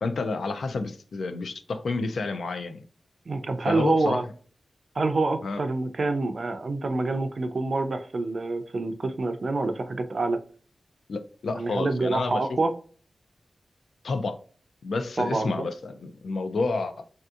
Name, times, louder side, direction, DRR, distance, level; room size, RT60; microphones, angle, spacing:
voice 1, 0.0-2.8 3.7-4.2 5.4-5.6 11.1-12.4 14.0-14.4 14.8-17.1, left 3 dB, 80° left, 0.4 m, -29 dB
voice 2, 3.3-4.2 5.0-10.4 11.5-12.7 15.2-15.7, right 3 dB, 50° right, 0.4 m, -27 dB
3.4 x 2.7 x 2.4 m
wide cardioid pair, 140°, 0 cm